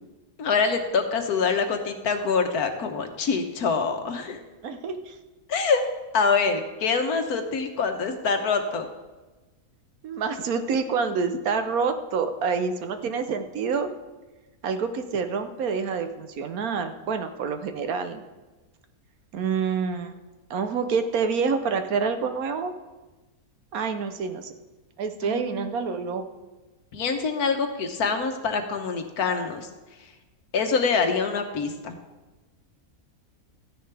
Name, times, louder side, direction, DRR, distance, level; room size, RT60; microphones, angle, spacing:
voice 1, 0.4-4.4 5.5-5.8 6.1-8.9 25.2-25.7 26.9-29.7 30.5-31.9, left 5 dB, 80° left, 6 dB, 1.5 m, -25 dB
voice 2, 4.6-5.1 10.0-13.9 14.6-18.2 19.3-20.1 20.5-22.7 23.7-24.5 25.0-26.2, right 5 dB, 70° right, 8 dB, 1.2 m, -27 dB
13.5 x 10.0 x 3.4 m, 1.2 s
omnidirectional pair, 1.6 m